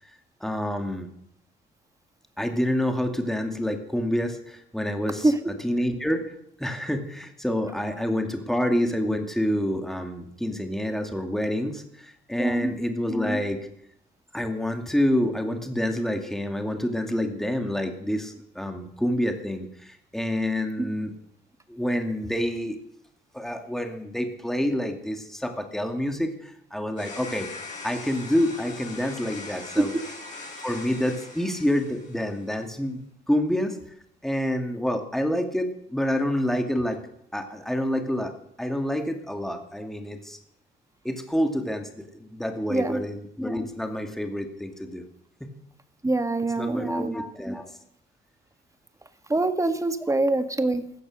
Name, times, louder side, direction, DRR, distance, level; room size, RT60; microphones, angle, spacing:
voice 1, 0.4-1.1 2.4-5.3 5.6-13.6 14.3-21.1 21.7-22.8 23.3-27.5 27.8-29.9 30.6-33.8 34.2-37.0 37.3-38.3 38.6-40.4 41.0-45.0 45.4-45.5 46.6-47.8, equal, ahead, 5 dB, 2.3 m, -28 dB
voice 2, 12.4-12.7 20.8-20.9 29.8-29.9 42.7-43.0 46.0-47.2 49.3-50.8, right 2 dB, 15° right, 10 dB, 1.6 m, -24 dB
sound 1, 27.0-32.5, left 3 dB, 40° left, 7.0 m, -41 dB
15.5 x 13.0 x 6.6 m, 0.70 s
cardioid pair, 90°, 20 cm